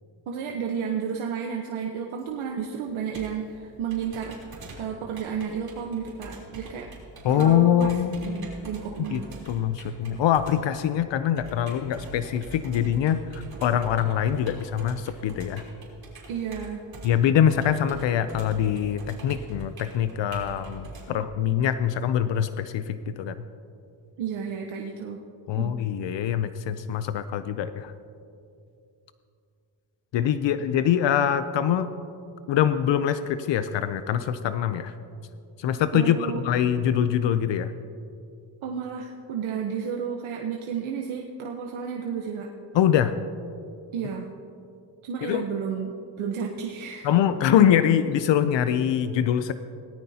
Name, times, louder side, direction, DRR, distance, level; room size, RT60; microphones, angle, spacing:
voice 1, 0.3-4.4 4.8-6.9 7.3-7.9 8.2-9.3 16.3-16.8 24.2-25.2 25.6-25.7 35.9-36.4 38.6-42.5 43.9-44.3 45.0-45.9 46.2-47.1, right 7 dB, 80° right, 1 dB, 1.1 m, -32 dB
Computer keyboard, 2.2-21.0, right 2 dB, 50° right, 3.5 m, -44 dB
voice 2, 7.2-8.1 9.1-15.6 17.0-23.4 25.5-27.9 30.1-31.9 32.5-34.9 35.6-36.2 36.4-37.7 42.7-43.1 45.2-45.4 47.0-49.5, left 9 dB, 65° left, 11 dB, 0.6 m, -24 dB
18.0 x 13.0 x 2.8 m, 2.5 s
cardioid pair, 120°, 47 cm